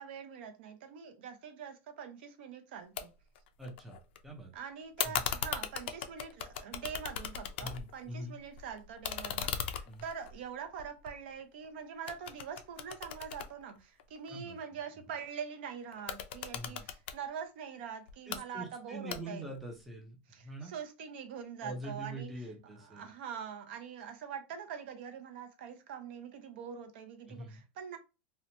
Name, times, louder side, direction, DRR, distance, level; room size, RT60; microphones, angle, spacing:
voice 1, 0.0-3.1 4.5-19.5 20.3-22.3 22.8-28.0, right 7 dB, 60° right, 0.5 m, -44 dB
sound 1, 3.0-3.1 3.3-4.2 5.0-8.0 8.4-11.6 12.1-14.3 15.9-17.2 18.1-18.4 19.1-19.6, left 9 dB, 75° left, 0.4 m, -38 dB
voice 2, 3.6-4.5 5.0-5.3 7.6-8.3 9.9-10.0 14.3-14.6 16.5-16.9 18.3-20.7 21.6-23.1 27.3-27.6, right 1 dB, ahead, 0.4 m, -44 dB
2.8 x 2.1 x 2.7 m
supercardioid pair, 175°, 6 cm